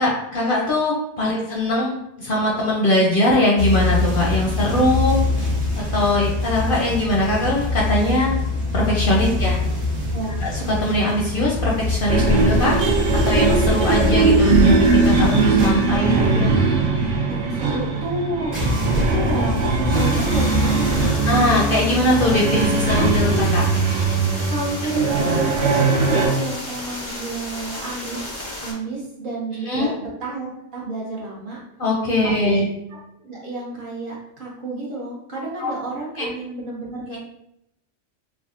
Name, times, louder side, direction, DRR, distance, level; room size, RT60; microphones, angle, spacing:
voice 1, 0.0-5.2 5.7-8.4 8.7-9.6 10.4-12.8 13.3-16.5 21.3-23.6 29.6-29.9 31.8-32.6 35.6-35.7 36.2-36.3, left 1 dB, 60° left, -3 dB, 0.6 m, -21 dB
sound 1, 3.6-17.7 17.9-21.1, left 2 dB, 25° right, 0.9 m, -25 dB
sound 2, 12.1-26.3, right 3 dB, 75° right, 0.9 m, -20 dB
voice 2, 16.5-18.7 19.0-21.2 24.5-28.2 28.6-31.6 32.2-32.7 33.2-37.2, right 2 dB, 50° right, -4 dB, 0.8 m, -30 dB
sound 3, 19.9-28.7, left 1 dB, 20° left, 0.5 m, -33 dB
3.4 x 2.2 x 2.4 m, 0.82 s
omnidirectional pair, 1.3 m